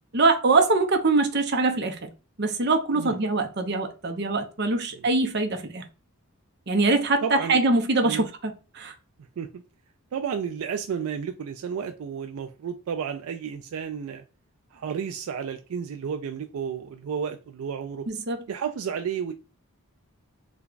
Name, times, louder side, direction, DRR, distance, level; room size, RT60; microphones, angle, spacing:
voice 1, 0.1-2.1 2.4-5.8 6.7-8.9 18.1-18.4, right 3 dB, 50° right, 0.7 m, -23 dB
voice 2, 7.2-7.6 8.0-8.3 9.4-9.6 10.1-14.2 14.7-18.1 18.5-19.3, right 7 dB, 75° right, 0.3 m, -32 dB
3.4 x 2.3 x 3.8 m
head